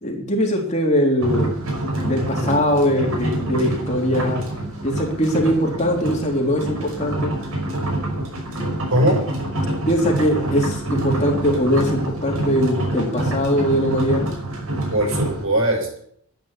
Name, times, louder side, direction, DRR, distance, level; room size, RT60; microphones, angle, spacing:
voice 1, 0.0-1.5 2.0-4.4 4.8-7.3 9.8-14.3, equal, 30° left, 0 dB, 3.4 m, -21 dB
sound 1, 1.2-15.4, right 1 dB, 85° right, 5.7 m, -26 dB
voice 2, 8.9-9.2 14.9-16.0, right 1 dB, 70° right, 1 dB, 6.7 m, -20 dB
12.0 x 10.5 x 8.4 m, 0.66 s
head